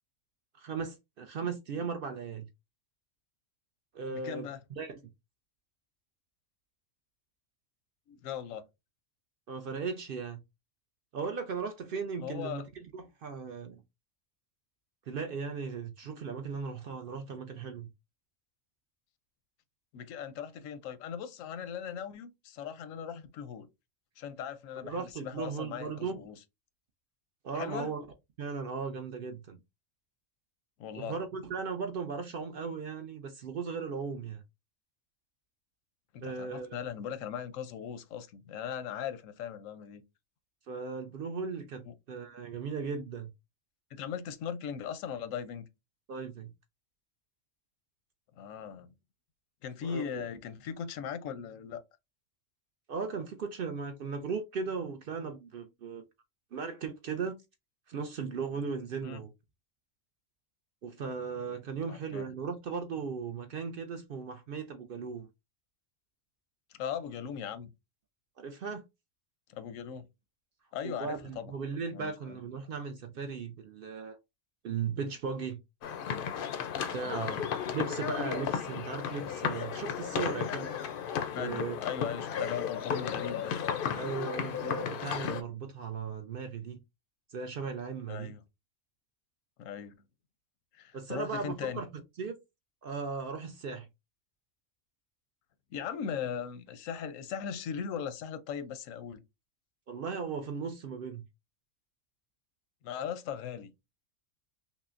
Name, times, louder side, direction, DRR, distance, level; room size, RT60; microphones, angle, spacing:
voice 1, 0.6-2.5 3.9-4.5 4.8-5.1 9.5-10.4 11.1-12.6 12.9-13.8 15.1-17.9 24.8-26.2 27.4-28.0 28.4-29.6 31.0-34.4 36.2-36.7 40.7-43.3 46.1-46.5 49.8-50.2 52.9-56.0 56.5-57.3 57.9-59.3 60.8-65.3 68.4-68.8 70.8-74.2 74.6-75.6 76.9-80.7 81.4-81.8 83.9-86.8 87.3-88.3 90.9-91.9 92.2-92.4 92.8-93.9 99.9-101.2, right 5 dB, 60° right, 0.6 m, -37 dB
voice 2, 4.1-4.6 8.1-8.6 12.2-12.6 19.9-23.7 24.2-26.4 27.5-27.9 30.8-31.2 36.1-40.0 41.9-42.0 43.9-45.7 48.4-48.9 49.6-51.8 59.0-59.3 61.9-62.3 66.7-67.7 69.5-70.1 70.7-71.5 71.9-72.4 77.0-77.4 81.3-83.5 88.1-88.4 89.6-89.9 90.7-91.8 95.7-99.2 102.8-103.7, left 8 dB, 90° left, 1.0 m, -39 dB
sound 1, 75.8-85.4, left 7 dB, 60° left, 0.5 m, -34 dB
5.5 x 2.0 x 2.4 m
omnidirectional pair, 1.3 m